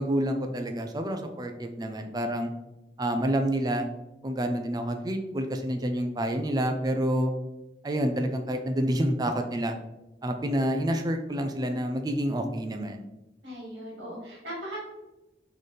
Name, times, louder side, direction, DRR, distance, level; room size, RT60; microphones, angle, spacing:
voice 1, 0.0-2.5 3.0-3.9 4.2-7.3 7.8-9.8 10.2-13.1, equal, 20° right, 5 dB, 0.4 m, -28 dB
voice 2, 13.4-14.8, equal, 75° right, -5 dB, 1.6 m, -38 dB
4.0 x 4.0 x 3.2 m, 0.98 s
head